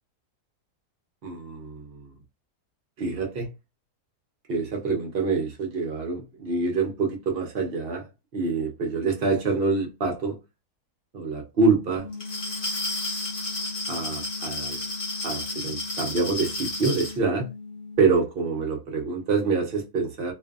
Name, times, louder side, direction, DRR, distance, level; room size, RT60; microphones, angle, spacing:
voice 1, 1.2-2.1 3.0-3.5 4.5-8.1 8.3-10.4 11.1-12.1 13.9-14.8 15.2-17.5 18.0-20.3, right 4 dB, 60° right, 0.6 m, -26 dB
sound 1, 12.0-18.2, left 4 dB, 75° left, 1.1 m, -40 dB
Glass, 12.1-17.2, left 2 dB, 40° left, 0.9 m, -32 dB
2.5 x 2.4 x 2.3 m
omnidirectional pair, 1.7 m